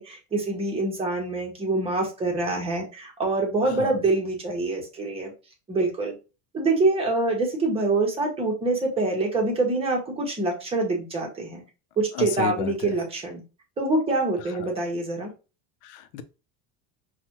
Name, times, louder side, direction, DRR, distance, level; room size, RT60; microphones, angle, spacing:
voice 1, 0.0-5.3 5.7-6.1 6.5-11.6 12.0-13.4 13.8-15.3, right 2 dB, 15° right, 1.1 m, -25 dB
voice 2, 3.6-4.0 12.1-13.0 14.4-14.7 15.8-16.2, left 9 dB, 85° left, 0.7 m, -33 dB
5.8 x 2.4 x 2.9 m
cardioid pair, 175°, 33 cm